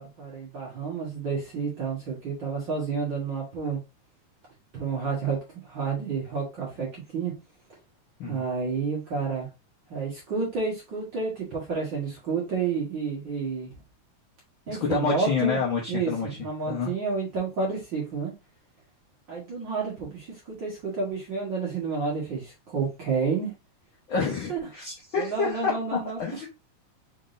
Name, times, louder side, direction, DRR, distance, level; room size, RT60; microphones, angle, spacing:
voice 1, 0.0-3.8 4.7-5.4 5.6-7.3 8.2-9.5 9.9-13.7 14.7-15.6 15.9-18.3 19.3-23.5 24.2-24.6 25.2-26.4, right 5 dB, 45° right, 1.6 m, -30 dB
voice 2, 14.7-16.3 16.7-16.9 24.1-26.5, left 5 dB, 75° left, 1.1 m, -28 dB
5.2 x 3.8 x 2.5 m
omnidirectional pair, 3.8 m